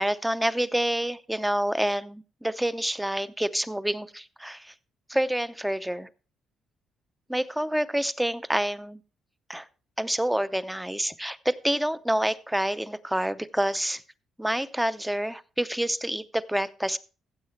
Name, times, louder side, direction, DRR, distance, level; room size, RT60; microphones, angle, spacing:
voice 1, 0.0-4.7 5.1-6.1 7.3-9.0 9.5-9.7 10.0-14.0 14.4-17.0, right 1 dB, 5° right, 14 dB, 0.6 m, -28 dB
15.5 x 7.6 x 3.3 m, 0.34 s
cardioid pair, 90°, 0 cm